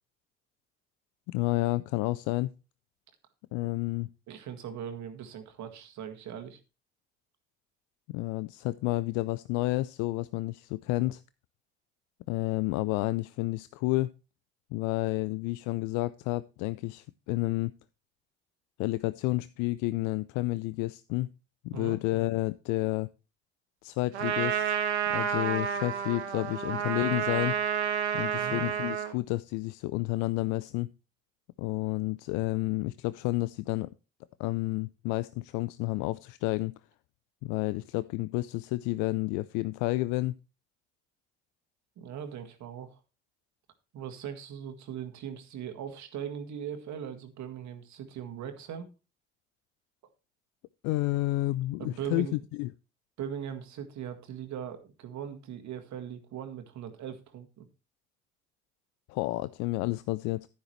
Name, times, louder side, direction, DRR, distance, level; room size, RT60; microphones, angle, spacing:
voice 1, 1.3-2.5 3.5-4.1 8.1-11.2 12.3-14.1 14.7-17.7 18.8-21.3 21.6-23.1 23.8-24.8 25.1-27.6 28.1-30.9 31.6-33.9 34.4-36.7 37.4-40.3 50.8-52.7 59.1-60.5, left 19 dB, 65° left, 16 dB, 0.5 m, -30 dB
voice 2, 4.3-6.6 21.7-22.0 28.4-28.6 42.0-43.0 43.9-48.9 51.8-52.4 53.2-57.7, right 8 dB, 60° right, 7 dB, 1.8 m, -39 dB
Trumpet, 24.1-29.2, right 8 dB, 90° right, 1.1 m, -30 dB
10.0 x 10.0 x 3.1 m, 0.30 s
hypercardioid pair, 50°, 32 cm